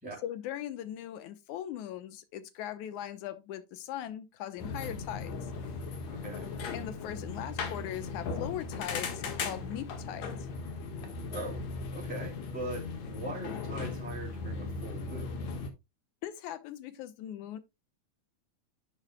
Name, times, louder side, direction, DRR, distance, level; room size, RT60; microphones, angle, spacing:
voice 1, 0.2-5.4 6.7-10.4 16.2-17.6, left 11 dB, 80° left, 2.3 m, -40 dB
sound 1, 4.6-15.7, left 4 dB, 65° left, 2.7 m, -38 dB
voice 2, 6.1-6.5 11.3-11.6 11.9-15.4, right 1 dB, 5° right, 3.0 m, -41 dB
11.0 x 7.9 x 2.2 m
omnidirectional pair, 3.5 m